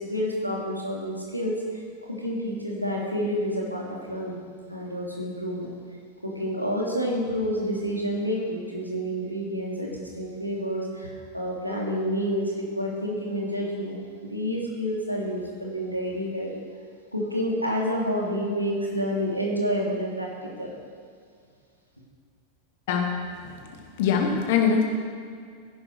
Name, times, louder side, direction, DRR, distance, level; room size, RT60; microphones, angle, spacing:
voice 1, 0.0-1.8 2.1-4.4 4.7-5.7 6.2-16.5 17.1-20.7, equal, 90° right, -3 dB, 2.7 m, -29 dB
voice 2, 22.9-23.2 23.4-23.6 24.0-24.9, left 6 dB, 50° left, 2 dB, 2.1 m, -22 dB
15.5 x 11.0 x 4.7 m, 2.2 s
figure-of-eight pair, 90°, 0 cm